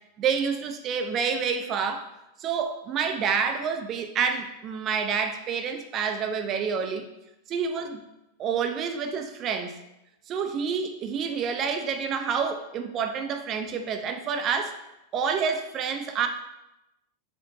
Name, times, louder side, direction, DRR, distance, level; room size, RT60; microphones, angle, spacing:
voice 1, 0.2-2.1 2.4-7.1 7.5-8.0 8.4-9.8 10.3-14.8 15.1-16.3, right 6 dB, 40° right, 7 dB, 0.4 m, -28 dB
4.4 x 3.7 x 2.6 m, 0.92 s
hypercardioid pair, 100°, 0 cm